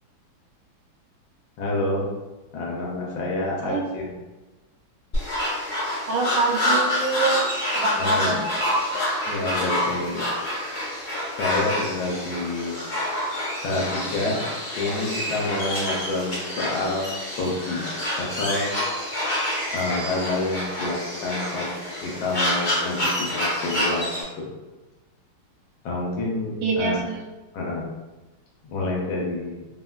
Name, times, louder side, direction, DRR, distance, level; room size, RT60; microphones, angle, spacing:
voice 1, 1.6-2.1 2.5-4.2 8.0-8.4 9.3-10.2 11.4-12.8 13.6-14.4 14.8-17.1 17.4-17.8 18.2-18.7 19.7-21.7 22.0-24.5 25.8-27.1 27.5-27.9 28.6-29.6, left 2 dB, 80° left, -3 dB, 1.3 m, -28 dB
sound 1, 5.1-24.2, left 1 dB, 45° left, 0.6 m, -27 dB
voice 2, 6.1-7.4 7.7-8.9 26.6-27.2, right 3 dB, 85° right, -1 dB, 1.4 m, -25 dB
3.7 x 2.1 x 2.2 m, 1.1 s
omnidirectional pair, 2.2 m